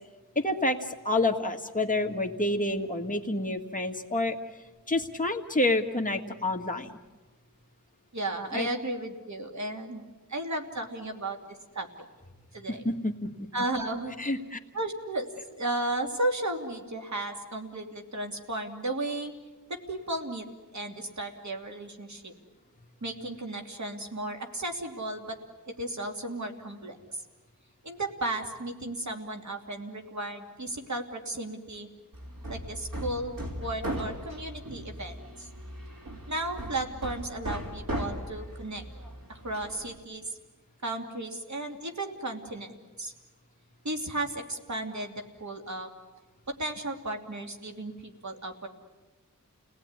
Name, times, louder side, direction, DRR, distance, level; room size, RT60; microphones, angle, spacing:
voice 1, 0.4-4.4 4.9-7.0 8.5-8.7 12.7-13.1 13.4-13.5 14.2-14.6, left 2 dB, 25° left, 3 dB, 1.9 m, -28 dB
voice 2, 8.1-11.4 11.7-11.9 12.5-12.9 13.5-14.3 14.7-19.3 19.7-20.4 20.7-22.3 23.0-25.4 25.7-27.0 27.8-31.9 32.5-33.3 33.6-35.5 36.3-38.8 39.3-40.3 40.8-43.1 43.8-45.9 46.6-48.7, right 2 dB, 55° right, 3 dB, 2.8 m, -34 dB
Hammer, 32.1-40.0, equal, 80° right, 2.9 m, -38 dB
29.5 x 19.0 x 9.7 m, 1.2 s
wide cardioid pair, 75°, 34 cm